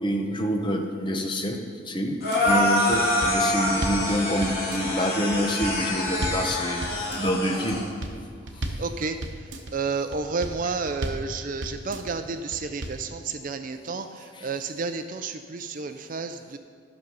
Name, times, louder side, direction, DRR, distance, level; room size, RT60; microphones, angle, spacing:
voice 1, 0.0-2.2 2.4-7.8 8.6-8.9 10.6-10.7 14.3-14.5, equal, 25° left, 3 dB, 0.8 m, -27 dB
sound 1, 2.1-2.5 2.9-4.1 4.4-5.0 5.3-6.5 6.8-7.4 7.7-8.2 8.5-8.9 9.2-9.7 10.1-10.6 10.9-11.3 11.6-12.1 12.5-13.0, right 1 dB, 65° right, 1.0 m, -34 dB
sound 2, 2.2-7.8, left 1 dB, 50° left, 2.8 m, -26 dB
voice 2, 8.8-9.2 9.7-14.0 14.4-16.6, right 4 dB, 40° right, 8 dB, 0.4 m, -31 dB
12.0 x 6.4 x 5.5 m, 2.1 s
head